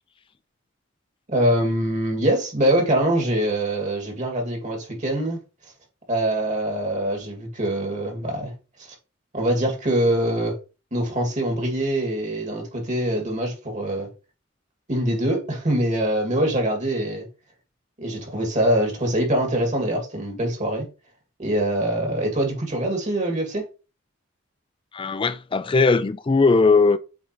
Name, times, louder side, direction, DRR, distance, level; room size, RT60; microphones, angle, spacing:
voice 1, 1.3-5.4 6.1-8.5 9.3-10.6 10.9-14.1 14.9-17.3 18.0-20.8 21.4-23.7, right 1 dB, 40° right, 2.1 m, -23 dB
voice 2, 24.9-27.0, left 4 dB, 25° left, 0.4 m, -19 dB
8.2 x 4.1 x 3.0 m
head